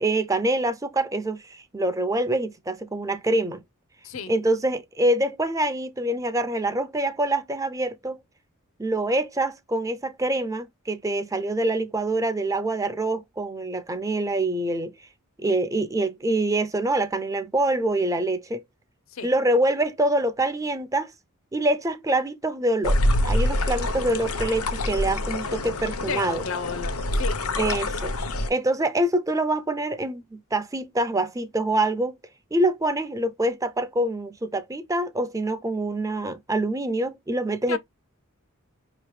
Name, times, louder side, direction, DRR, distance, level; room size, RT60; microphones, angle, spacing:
voice 1, 0.0-3.6 4.3-8.2 8.8-14.9 15.4-18.6 19.2-21.1 21.5-23.0 23.2-26.4 27.6-28.1 28.5-32.1 32.5-37.8, right 1 dB, 15° right, 0.5 m, -25 dB
sound 1, 22.8-28.5, left 1 dB, 90° left, 0.9 m, -26 dB
voice 2, 26.1-27.4 37.7-37.8, left 5 dB, 65° left, 0.7 m, -32 dB
5.5 x 2.9 x 3.2 m
head